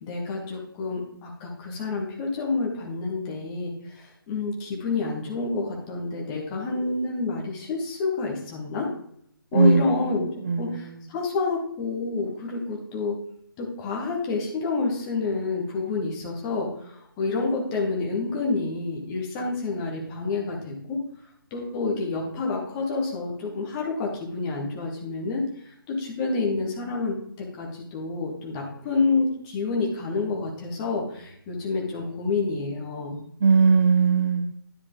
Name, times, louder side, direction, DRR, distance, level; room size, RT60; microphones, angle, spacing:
voice 1, 0.0-8.9 9.5-10.3 10.6-13.2 13.6-21.0 21.5-33.2, left 3 dB, 15° left, -1 dB, 1.2 m, -28 dB
voice 2, 9.5-11.0 33.4-34.5, right 5 dB, 30° right, 8 dB, 0.4 m, -21 dB
10.5 x 4.7 x 3.8 m, 0.69 s
figure-of-eight pair, 150°, 12 cm